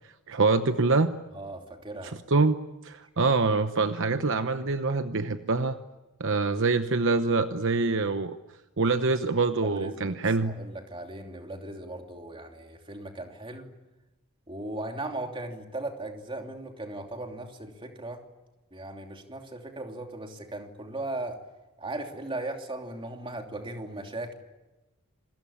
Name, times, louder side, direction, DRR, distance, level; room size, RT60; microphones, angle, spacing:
voice 1, 0.3-1.1 2.3-5.8 6.2-8.4 8.8-10.5, right 3 dB, 60° right, 9 dB, 0.9 m, -25 dB
voice 2, 1.3-2.2 9.6-10.2 10.4-13.7 14.5-18.3 18.7-21.4 21.8-24.3, right 2 dB, 25° right, 3 dB, 3.0 m, -37 dB
27.5 x 21.5 x 8.7 m, 1.1 s
head